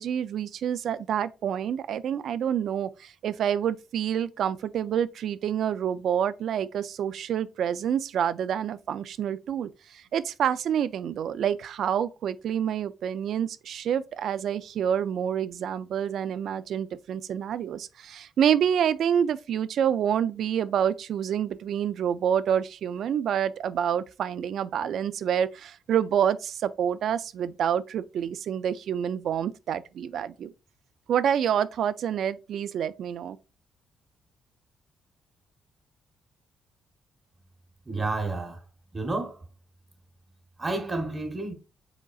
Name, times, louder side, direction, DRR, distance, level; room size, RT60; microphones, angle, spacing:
voice 1, 0.0-30.5 31.1-33.4, right 9 dB, 65° right, 0.3 m, -27 dB
voice 2, 37.9-38.6 38.9-39.3 40.6-41.5, right 2 dB, 20° right, 1.0 m, -30 dB
5.0 x 3.9 x 2.3 m
cardioid pair, 130°, 0 cm